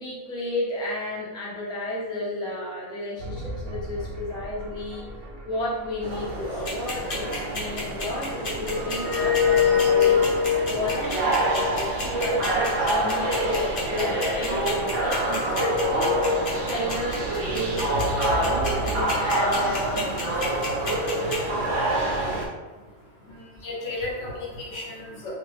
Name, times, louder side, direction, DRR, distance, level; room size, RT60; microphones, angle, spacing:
voice 1, 0.0-5.0 5.4-10.3 10.7-20.4, left 1 dB, 5° left, -6 dB, 0.4 m, -32 dB
sound 1, 3.2-19.0, right 1 dB, 60° right, 0.7 m, -38 dB
sound 2, 6.0-22.5, left 1 dB, 75° right, 1.1 m, -25 dB
sound 3, 6.7-21.4, left 3 dB, 50° left, 1.0 m, -32 dB
voice 2, 22.7-25.3, left 2 dB, 75° left, -4 dB, 1.2 m, -35 dB
2.7 x 2.4 x 3.2 m, 1.3 s
omnidirectional pair, 1.3 m